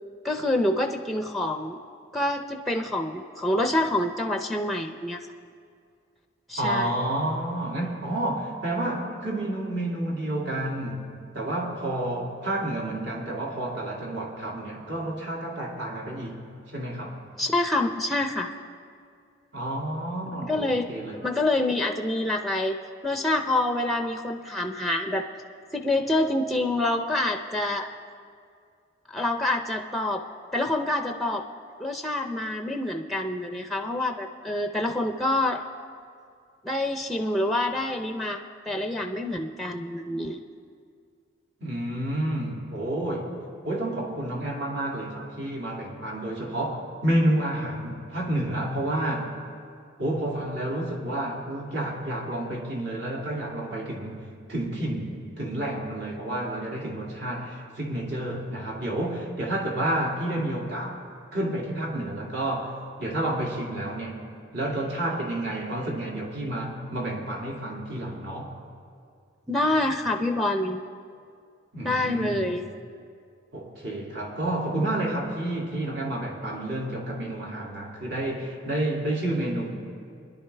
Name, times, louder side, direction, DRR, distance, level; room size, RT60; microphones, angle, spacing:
voice 1, 0.2-1.8 2.1-5.3 6.5-6.9 17.4-18.5 20.5-20.9 21.2-22.8 23.0-25.2 25.7-27.9 29.1-30.2 30.5-31.4 31.8-35.6 36.6-38.4 38.7-40.4 69.5-70.8 71.8-72.6, left 1 dB, ahead, 4 dB, 0.5 m, -26 dB
voice 2, 6.6-16.4 16.7-17.2 19.5-21.2 41.6-43.4 43.6-49.4 50.0-54.2 54.5-61.0 61.3-62.7 63.0-64.2 64.5-68.5 71.7-72.5 73.5-79.7, right 1 dB, 60° right, -2 dB, 2.3 m, -30 dB
24.0 x 10.5 x 3.3 m, 2.3 s
head